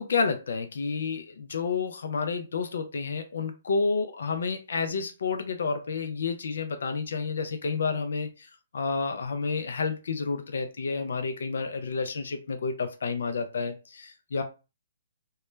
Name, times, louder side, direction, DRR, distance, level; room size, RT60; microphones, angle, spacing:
voice 1, 0.0-14.4, left 4 dB, 75° left, 0.4 m, -30 dB
2.2 x 2.1 x 3.0 m
hypercardioid pair, 140°, 0 cm